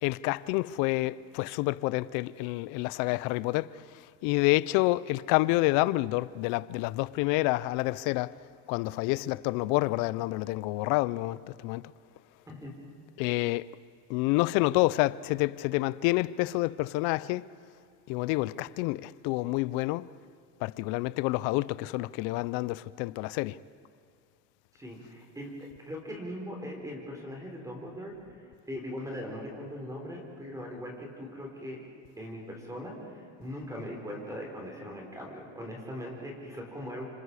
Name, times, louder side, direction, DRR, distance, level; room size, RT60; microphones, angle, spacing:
voice 1, 0.0-3.7 4.2-8.3 8.7-11.8 13.2-13.6 14.1-17.5 18.1-20.1 20.6-23.6, left 20 dB, 65° left, 0.6 m, -28 dB
voice 2, 24.7-31.8 32.2-37.1, equal, 10° right, 4.8 m, -40 dB
26.5 x 25.5 x 4.9 m
supercardioid pair, 110°, 34 cm